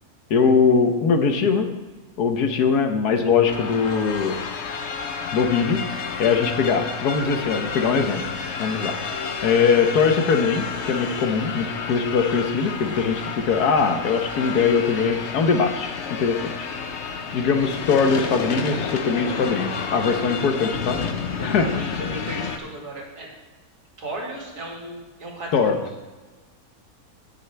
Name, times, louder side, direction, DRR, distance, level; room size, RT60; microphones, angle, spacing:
voice 1, 0.3-1.7 2.2-4.4 5.3-5.8 6.2-8.2 8.6-9.0 9.4-16.7 17.3-21.0 21.4-21.7 25.5-25.8, left 5 dB, 80° left, 6 dB, 1.5 m, -21 dB
sound 1, 3.5-22.6, left 5 dB, 50° left, 1.0 m, -30 dB
voice 2, 21.4-23.3 24.0-25.8, right 1 dB, 90° right, -2 dB, 2.8 m, -35 dB
17.0 x 6.9 x 3.4 m, 1.3 s
omnidirectional pair, 1.7 m